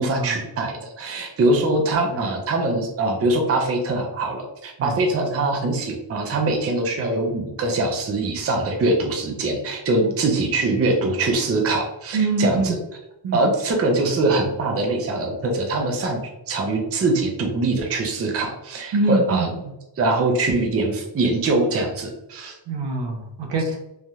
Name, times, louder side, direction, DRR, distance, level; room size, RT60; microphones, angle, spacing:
voice 1, 0.0-12.8 13.3-16.2 16.5-19.5 20.0-22.5, right 2 dB, 35° right, 2 dB, 0.5 m, -23 dB
voice 2, 12.1-12.8 13.2-13.4 18.9-19.5 22.7-23.8, right 2 dB, 70° right, 2 dB, 0.8 m, -23 dB
3.3 x 2.7 x 2.2 m, 0.90 s
wide cardioid pair, 115°, 45 cm